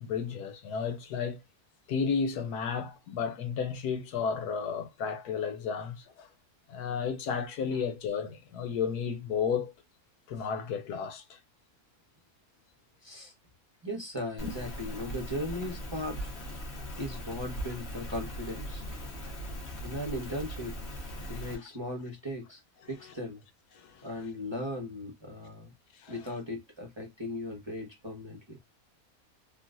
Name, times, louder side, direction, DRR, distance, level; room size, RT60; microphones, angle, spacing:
voice 1, 0.0-1.4 1.9-6.3 6.7-9.7 10.3-11.4 14.4-14.5 21.1-21.7 22.8-23.1 23.7-24.1 26.0-26.2, left 6 dB, 85° left, 1.3 m, -33 dB
voice 2, 13.0-13.3 13.8-16.2 16.9-18.8 19.8-20.7 21.3-22.6 22.9-23.4 24.0-25.7 26.1-28.6, left 1 dB, 25° right, 0.7 m, -37 dB
Rain, 14.4-21.5, equal, 45° left, 1.3 m, -39 dB
3.8 x 2.3 x 2.4 m
omnidirectional pair, 1.6 m